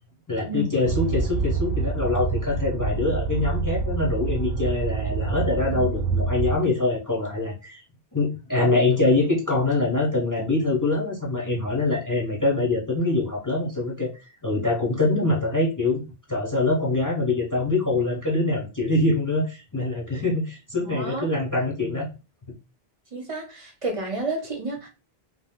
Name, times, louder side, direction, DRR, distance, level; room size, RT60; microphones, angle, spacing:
voice 1, 0.3-7.8 8.1-14.1 14.4-22.1, left 2 dB, 20° left, -1 dB, 0.7 m, -24 dB
sound 1, 0.8-6.6, right 4 dB, 85° right, 0.8 m, -27 dB
voice 2, 20.8-21.3 23.1-24.9, right 2 dB, 40° right, 2 dB, 0.6 m, -31 dB
2.5 x 2.1 x 3.5 m, 0.30 s
omnidirectional pair, 1.0 m